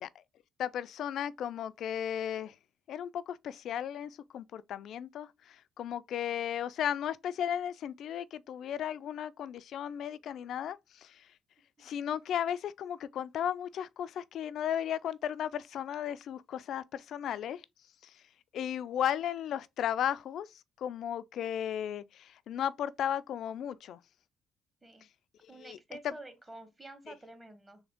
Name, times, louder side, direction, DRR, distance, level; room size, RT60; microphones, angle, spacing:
voice 1, 0.6-2.5 2.9-11.1 11.8-17.6 18.5-20.5 20.8-24.0 25.7-25.8, left 9 dB, 65° left, 0.3 m, -35 dB
voice 2, 25.5-27.8, right 2 dB, 25° right, 1.4 m, -49 dB
3.5 x 3.1 x 3.5 m
supercardioid pair, 65°, 0 cm